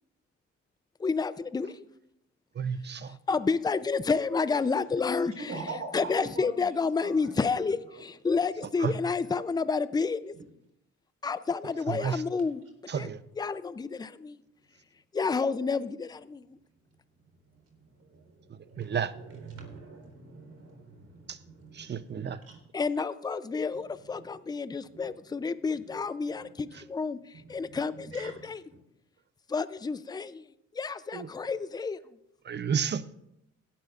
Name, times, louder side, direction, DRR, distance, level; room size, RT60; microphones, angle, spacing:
voice 1, 1.0-1.8 3.3-5.3 5.9-7.8 8.1-10.4 11.2-12.6 12.9-13.1 13.4-14.4 15.1-16.4 22.7-27.2 27.5-28.6 29.5-30.4 30.7-32.0, left 4 dB, 15° left, 14 dB, 0.5 m, -30 dB
voice 2, 2.5-3.2 8.8-9.0 11.9-12.2 12.9-13.2 18.5-19.1 21.3-21.4 21.7-22.4 26.7-26.8 31.1-31.3 32.4-33.0, right 7 dB, 35° right, 14 dB, 0.6 m, -32 dB
voice 3, 5.5-7.4 7.9-8.0 10.4-10.5 17.4-22.6 23.7-24.2 24.8-25.1 25.8-25.9 26.3-26.8 27.3-28.8, right 3 dB, 55° right, 3 dB, 4.0 m, -45 dB
17.5 x 12.0 x 2.5 m, 0.81 s
cardioid pair, 90°, 30 cm